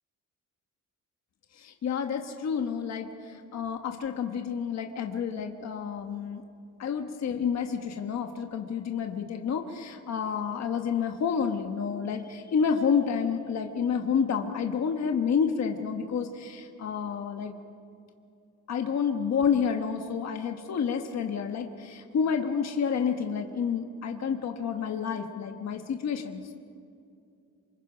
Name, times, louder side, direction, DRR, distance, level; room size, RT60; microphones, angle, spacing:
voice 1, 1.6-6.4 6.8-17.5 18.7-26.5, left 6 dB, 55° left, 4 dB, 1.3 m, -29 dB
27.0 x 23.5 x 5.1 m, 2.4 s
wide cardioid pair, 175°, 32 cm